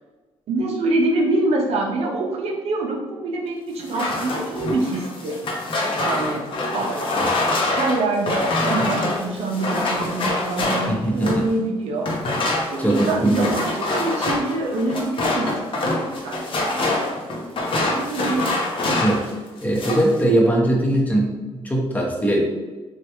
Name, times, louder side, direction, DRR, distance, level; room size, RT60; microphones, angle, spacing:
voice 1, 0.5-5.4 6.0-6.5 6.7-7.4 7.8-12.1 12.7-18.6, right 2 dB, 70° right, 0 dB, 0.5 m, -25 dB
sound 1, 3.8-11.5 12.0-19.3 19.6-20.1, left 2 dB, 55° left, 0.7 m, -25 dB
voice 2, 10.9-11.5 12.8-13.5 19.0-19.3 19.6-22.4, right 1 dB, 15° left, -2 dB, 0.8 m, -20 dB
3.2 x 2.3 x 2.8 m, 1.2 s
cardioid pair, 90°, 11 cm